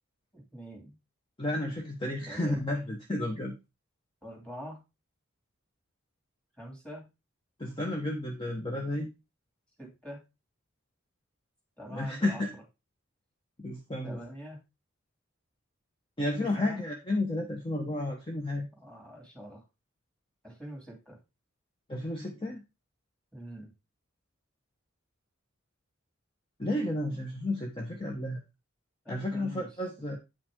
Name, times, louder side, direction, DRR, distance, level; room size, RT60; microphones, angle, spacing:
voice 1, 0.3-1.0 2.2-2.5 4.2-4.8 6.6-7.1 9.8-10.2 11.8-12.4 14.0-14.6 16.4-16.8 18.8-19.6 20.4-21.2 23.3-23.7 29.0-29.7, equal, 5° left, 0 dB, 2.7 m, -44 dB
voice 2, 1.4-3.5 7.6-9.1 11.9-12.5 13.6-14.2 16.2-18.7 21.9-22.6 26.6-28.4 29.1-30.2, left 1 dB, 25° left, 1 dB, 1.1 m, -32 dB
8.5 x 5.7 x 3.7 m, 0.25 s
head